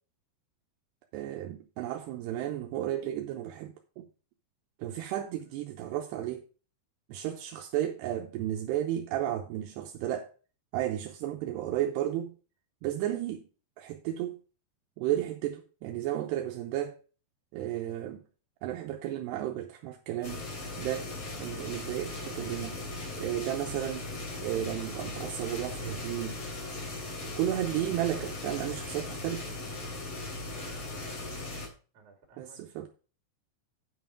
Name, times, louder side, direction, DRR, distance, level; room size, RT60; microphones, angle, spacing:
voice 1, 1.1-4.1 4.8-6.5 7.1-10.3 10.7-12.4 12.8-13.4 13.8-14.4 15.0-17.0 17.5-18.2 18.6-20.4 20.8-22.8 23.2-24.0 24.4-26.4 27.2-29.5 32.4-32.9, right 12 dB, 80° right, 2.6 m, -33 dB
sound 1, 20.2-31.7, left 2 dB, 40° left, 3.4 m, -38 dB
voice 2, 30.4-31.2 31.9-32.9, right 5 dB, 50° right, 3.2 m, -56 dB
9.6 x 5.9 x 4.8 m
omnidirectional pair, 5.4 m